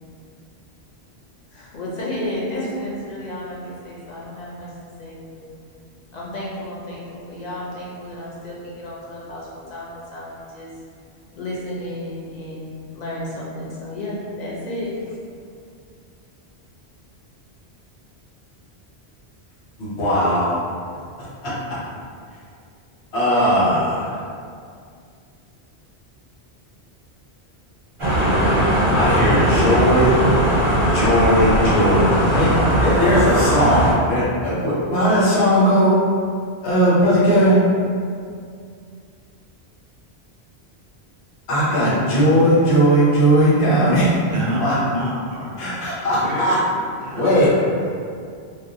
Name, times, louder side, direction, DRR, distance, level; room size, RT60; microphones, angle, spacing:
voice 1, 1.5-4.7 5.0-5.5 6.1-10.7 11.3-15.2, left 1 dB, 50° left, -6 dB, 0.6 m, -32 dB
voice 2, 19.8-20.6 23.1-24.2 28.9-30.2 30.9-32.0 32.3-32.5 32.8-35.9 36.6-37.6 41.5-44.1 44.6-44.7 45.6-46.6 47.1-47.6, equal, 80° left, -9 dB, 1.1 m, -18 dB
sound 1, 28.0-33.9, right 1 dB, 35° right, 0.8 m, -18 dB
voice 3, 44.3-45.5 46.1-46.6 47.0-47.9, right 1 dB, 65° right, -3 dB, 0.7 m, -28 dB
2.5 x 2.1 x 2.6 m, 2.3 s
omnidirectional pair, 1.1 m